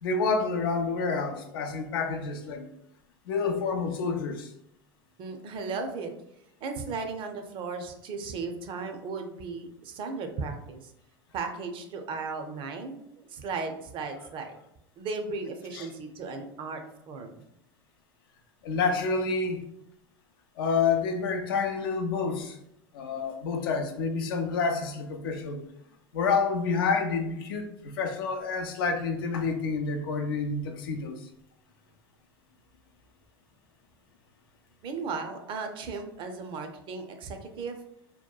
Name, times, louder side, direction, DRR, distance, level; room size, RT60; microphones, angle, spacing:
voice 1, 0.0-2.7 3.3-4.5 15.7-15.9 18.6-19.6 20.6-22.6 22.9-25.6 26.1-31.2, left 4 dB, 75° left, 5 dB, 0.4 m, -28 dB
voice 2, 5.2-6.1 6.6-10.9 11.3-13.0 13.3-14.6 15.0-17.4 34.8-37.8, right 4 dB, 45° right, 6 dB, 0.5 m, -36 dB
2.8 x 2.2 x 2.2 m, 0.78 s
hypercardioid pair, 85°, 12 cm